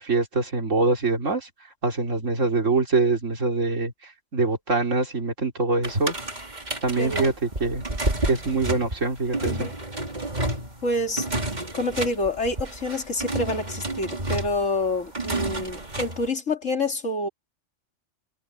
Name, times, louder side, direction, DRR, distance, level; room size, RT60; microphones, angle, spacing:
voice 1, 0.0-1.5 1.8-6.1 6.8-7.8 8.3-9.7, right 3 dB, 80° right, 3.5 m, -24 dB
sound 1, 5.8-16.3, right 1 dB, 35° right, 3.0 m, -30 dB
voice 2, 7.0-7.3 9.4-9.7 10.8-11.3 11.7-17.3, left 2 dB, 80° left, 3.2 m, -27 dB
omnidirectional pair, 1.3 m